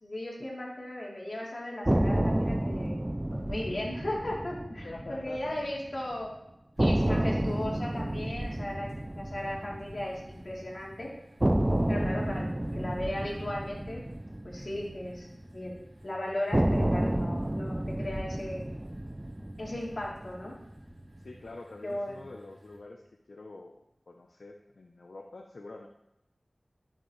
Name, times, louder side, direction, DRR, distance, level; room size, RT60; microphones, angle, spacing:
voice 1, 0.0-3.0 3.3-6.4 6.8-11.1 11.9-12.5 12.7-14.0 14.4-15.7 16.0-18.6 19.6-20.6 21.8-22.2, left 1 dB, 60° left, -4 dB, 3.2 m, -36 dB
sound 1, 1.9-5.9 6.2-6.3 6.8-10.9 11.4-15.8 16.5-20.9, right 1 dB, 25° right, 0.4 m, -30 dB
voice 2, 4.7-5.6 12.1-12.4 20.4-20.6 21.2-23.0 23.3-25.9, left 2 dB, 80° left, 3 dB, 0.7 m, -46 dB
sound 2, 6.7-22.8, equal, 80° right, 2.7 m, -57 dB
12.5 x 7.3 x 3.2 m, 0.87 s
wide cardioid pair, 45°, 0 cm